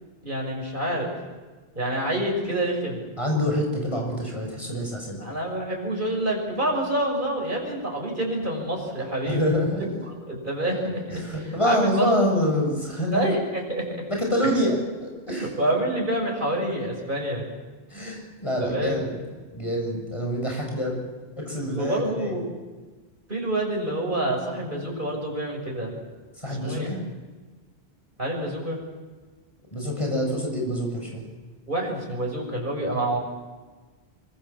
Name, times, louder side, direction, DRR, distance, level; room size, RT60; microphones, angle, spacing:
voice 1, 0.2-1.1 1.8-3.0 5.2-9.4 10.1-11.2 11.6-12.3 13.1-14.0 15.3-17.5 18.6-19.1 21.7-22.5 23.3-25.9 26.6-26.9 28.2-28.8 31.7-33.2, right 1 dB, 50° right, 0 dB, 6.9 m, -27 dB
voice 2, 3.2-5.2 9.2-9.9 11.1-13.3 14.1-15.5 17.9-19.1 19.5-21.0 21.4-22.4 26.4-27.0 29.7-31.2, equal, 30° left, 1 dB, 7.1 m, -26 dB
25.5 x 24.5 x 7.4 m, 1.4 s
omnidirectional pair, 1.1 m